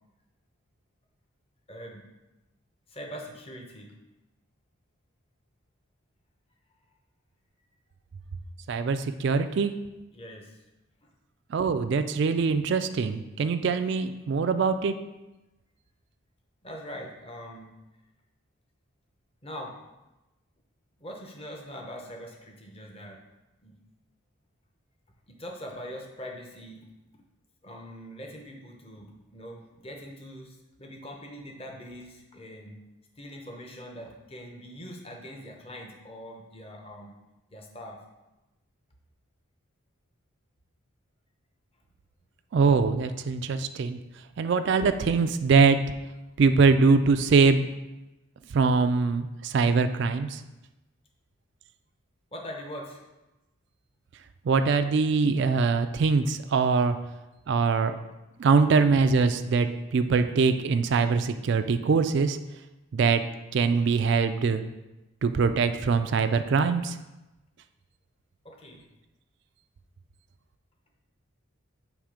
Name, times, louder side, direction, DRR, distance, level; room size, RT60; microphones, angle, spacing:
voice 1, 1.7-2.1 2.9-4.0 10.1-10.6 11.0-11.1 16.6-17.7 19.4-19.8 21.0-23.2 23.6-23.8 25.3-26.9 27.1-27.2 27.6-32.8 33.2-37.2 37.5-38.0 52.3-53.0 68.4-68.9, equal, 25° left, 1 dB, 0.8 m, -42 dB
voice 2, 8.7-9.8 11.5-15.0 42.5-44.0 44.4-45.8 46.4-47.7 48.5-50.4 54.4-57.0 57.5-57.9 58.4-62.4 62.9-63.2 63.5-64.6 65.2-67.0, right 4 dB, 55° right, 9 dB, 0.3 m, -23 dB
7.3 x 3.2 x 4.9 m, 1.0 s
head